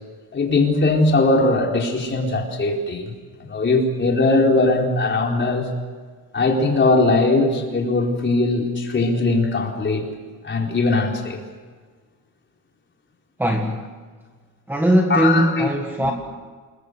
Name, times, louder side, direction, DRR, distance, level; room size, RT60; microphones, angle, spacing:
voice 1, 0.3-3.1 3.4-5.7 6.3-10.1 10.4-11.4 15.1-15.7 16.0-16.1, left 2 dB, 30° left, 0 dB, 4.4 m, -20 dB
voice 2, 13.4-13.9 14.7-16.1, right 1 dB, 5° right, 2 dB, 1.6 m, -19 dB
28.0 x 22.5 x 8.1 m, 1.5 s
cardioid pair, 175°, 39 cm